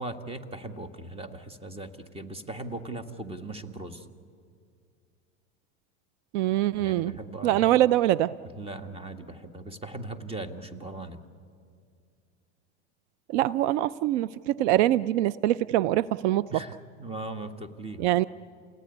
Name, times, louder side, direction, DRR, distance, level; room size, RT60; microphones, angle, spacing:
voice 1, 0.0-4.1 6.8-7.7 8.4-11.2 16.5-18.1, right 2 dB, 15° right, 10 dB, 1.7 m, -39 dB
voice 2, 6.3-7.1 7.4-8.3 13.3-16.5 18.0-18.2, right 14 dB, 70° right, 18 dB, 0.6 m, -24 dB
28.0 x 18.0 x 9.8 m, 2.2 s
supercardioid pair, 115°, 35 cm